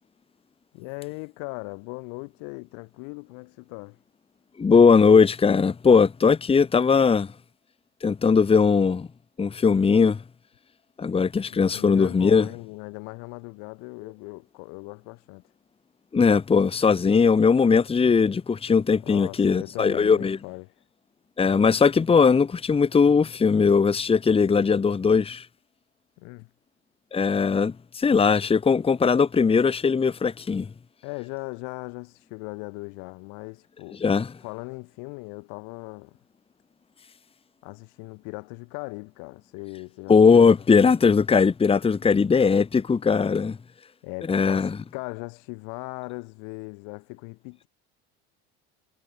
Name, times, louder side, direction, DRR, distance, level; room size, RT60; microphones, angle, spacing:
voice 1, 0.7-4.0 11.5-15.4 19.0-20.7 26.2-26.5 31.0-34.0 34.4-36.2 37.6-40.9 44.0-47.7, left 36 dB, 75° left, 6.7 m, -39 dB
voice 2, 4.6-7.3 8.0-9.1 9.4-10.2 11.0-12.5 16.1-20.4 21.4-25.4 27.1-30.7 34.0-34.3 40.1-43.6 44.3-44.8, left 5 dB, 20° left, 1.3 m, -19 dB
supercardioid pair, 100°, 31 cm